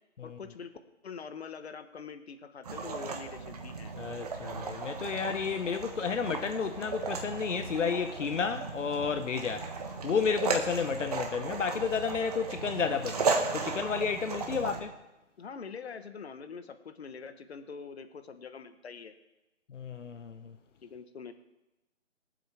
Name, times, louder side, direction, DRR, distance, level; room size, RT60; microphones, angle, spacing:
voice 1, 0.2-0.7 1.0-3.9 14.2-14.8 15.4-19.2 20.8-21.3, left 5 dB, 60° left, 1.1 m, -44 dB
sound 1, 2.6-14.8, right 4 dB, 30° right, 1.2 m, -35 dB
voice 2, 4.0-9.7 10.0-14.9 19.7-20.5, left 6 dB, 80° left, 0.9 m, -32 dB
22.5 x 7.7 x 3.4 m
hypercardioid pair, 165°, 37 cm